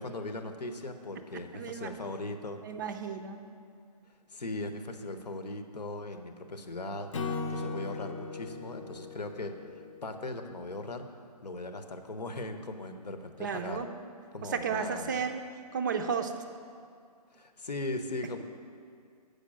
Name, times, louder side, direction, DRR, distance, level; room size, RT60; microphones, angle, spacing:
voice 1, 0.0-2.6 4.3-11.1 11.4-13.8 14.3-15.1 17.3-18.4, left 2 dB, 80° left, 7 dB, 0.9 m, -39 dB
voice 2, 1.5-1.9 2.6-3.4 13.4-13.9 14.4-15.4 15.7-16.3, right 6 dB, 30° right, 7 dB, 0.4 m, -33 dB
Acoustic guitar / Strum, 7.1-10.4, left 4 dB, 50° left, 0.7 m, -38 dB
8.1 x 5.2 x 7.4 m, 2.3 s
figure-of-eight pair, 145°, 21 cm